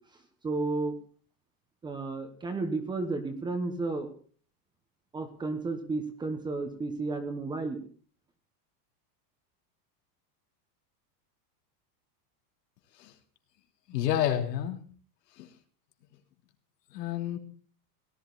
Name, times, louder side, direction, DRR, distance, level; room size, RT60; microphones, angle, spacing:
voice 1, 0.4-0.9 1.8-4.1 5.1-7.8, right 3 dB, 10° right, 7 dB, 1.1 m, -32 dB
voice 2, 13.9-14.8 15.4-15.5 16.9-17.4, left 11 dB, 90° left, 3 dB, 3.2 m, -29 dB
18.0 x 11.5 x 4.0 m, 0.43 s
supercardioid pair, 180°, 48 cm